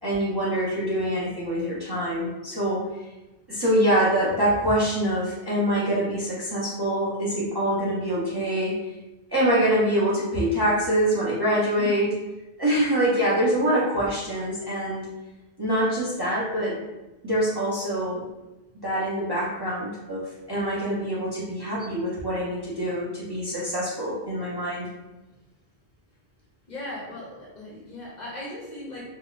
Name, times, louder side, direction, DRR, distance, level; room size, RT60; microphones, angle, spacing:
voice 1, 0.0-2.8 3.5-8.8 9.3-12.1 12.6-15.1 15.6-16.8 17.2-18.3 18.8-24.9, equal, 25° right, -8 dB, 0.6 m, -25 dB
voice 2, 26.7-29.0, left 2 dB, 45° left, -5 dB, 0.7 m, -37 dB
3.6 x 2.2 x 2.4 m, 1.1 s
omnidirectional pair, 1.1 m